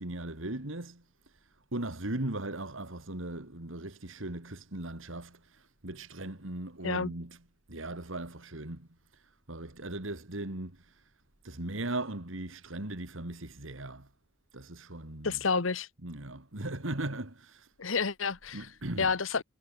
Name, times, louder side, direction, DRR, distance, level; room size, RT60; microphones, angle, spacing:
voice 1, 0.0-7.4 7.7-11.1 11.4-14.1 14.5-15.4 16.0-17.7 18.5-19.1, right 1 dB, 80° right, 2.8 m, -38 dB
voice 2, 15.2-15.9 17.8-18.7 19.0-19.4, left 5 dB, 85° left, 1.2 m, -29 dB
head